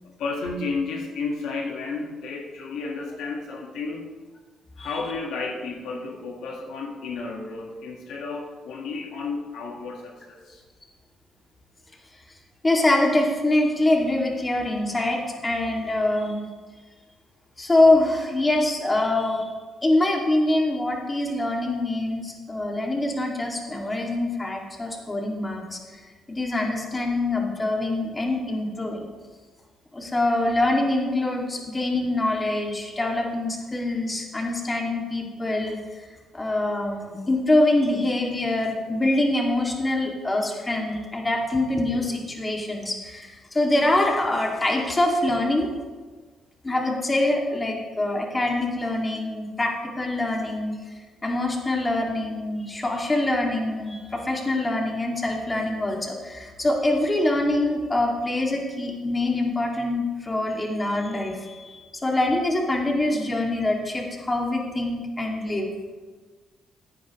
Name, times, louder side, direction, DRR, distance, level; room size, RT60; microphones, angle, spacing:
voice 1, 0.2-4.0 4.8-10.6, left 4 dB, 80° left, 1 dB, 1.5 m, -32 dB
voice 2, 12.6-16.5 17.6-19.5 19.8-26.0 26.3-29.1 29.9-36.1 36.3-45.7 46.6-50.8 51.2-65.7, left 2 dB, 20° left, 0 dB, 2.2 m, -24 dB
15.0 x 10.0 x 3.1 m, 1.4 s
cardioid pair, 90°, 0 cm